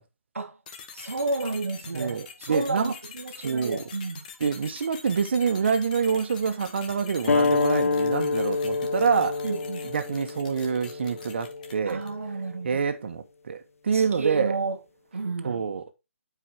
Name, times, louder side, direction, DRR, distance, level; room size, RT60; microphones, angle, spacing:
sound 1, 0.7-12.2, left 6 dB, 35° left, 1.3 m, -45 dB
voice 1, 0.9-4.2 9.4-9.9 11.9-12.8 13.9-14.8 15.1-15.6, right 3 dB, 80° right, 1.0 m, -31 dB
voice 2, 1.9-2.9 3.4-3.8 4.4-9.4 9.8-12.0 12.6-14.5 15.4-15.8, right 6 dB, 55° right, 1.2 m, -26 dB
sound 2, 7.3-12.4, left 4 dB, 85° left, 0.3 m, -27 dB
8.8 x 4.9 x 3.6 m
figure-of-eight pair, 150°, 7 cm